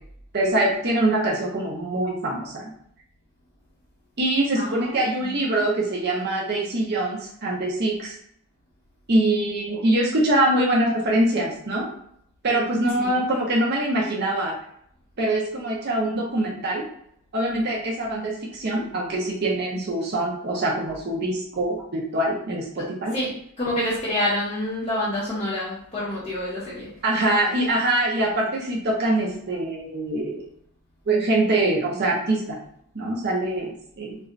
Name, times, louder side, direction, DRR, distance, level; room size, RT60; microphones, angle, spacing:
voice 1, 0.3-2.7 4.2-8.2 9.1-11.9 12.4-14.5 15.2-16.8 17.3-23.2 27.0-30.4 31.1-32.4 32.9-34.2, right 1 dB, 45° right, -3 dB, 0.6 m, -24 dB
voice 2, 4.5-5.5 12.8-13.2 23.1-26.9, left 1 dB, 30° left, -9 dB, 0.7 m, -28 dB
4.3 x 2.1 x 2.5 m, 0.68 s
head